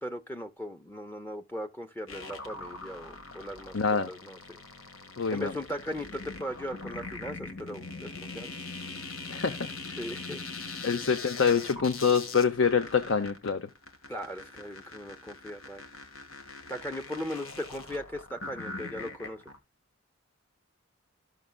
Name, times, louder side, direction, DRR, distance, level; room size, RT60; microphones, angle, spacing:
voice 1, 0.0-3.8 4.0-4.6 5.3-8.5 10.0-10.4 14.1-15.8 16.7-19.4, equal, 10° left, 0.6 m, -38 dB
sound 1, 2.1-19.6, left 3 dB, 85° left, 1.5 m, -42 dB
voice 2, 3.7-4.1 5.2-5.5 9.3-9.7 10.8-13.7, left 6 dB, 65° left, 0.7 m, -26 dB
13.5 x 6.2 x 2.2 m
head